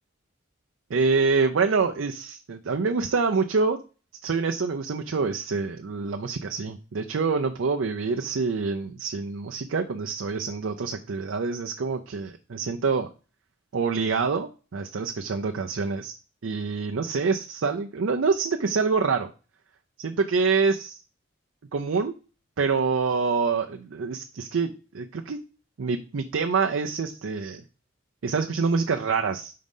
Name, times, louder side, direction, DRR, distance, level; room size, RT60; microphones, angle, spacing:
voice 1, 0.9-3.8 4.2-13.1 13.7-16.1 16.4-19.3 20.0-21.0 21.7-22.1 22.6-25.4 25.8-27.6 28.2-29.5, right 4 dB, 80° right, 4 dB, 0.5 m, -26 dB
5.3 x 3.8 x 5.3 m, 0.34 s
head